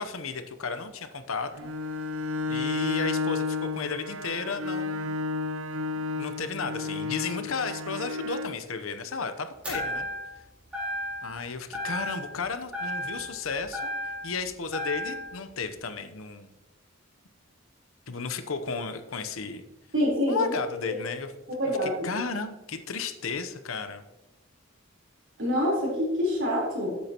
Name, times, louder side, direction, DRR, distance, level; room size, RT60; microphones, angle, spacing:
voice 1, 0.0-1.7 2.5-5.1 6.2-10.1 11.2-13.9 14.2-16.5 18.1-19.7 20.3-21.3 21.8-24.0, left 4 dB, 85° left, 10 dB, 0.9 m, -33 dB
Bowed string instrument, 1.5-8.6, left 3 dB, 85° right, 0.6 m, -32 dB
sound 1, 9.6-10.4 10.7-11.4 11.7-12.4 12.7-14.4 14.7-15.3, equal, 5° right, 3.9 m, -34 dB
voice 2, 19.9-20.5 20.9-21.0 21.6-21.9 25.4-27.0, equal, 65° right, -3 dB, 3.9 m, -26 dB
12.5 x 8.5 x 3.0 m, 1.0 s
head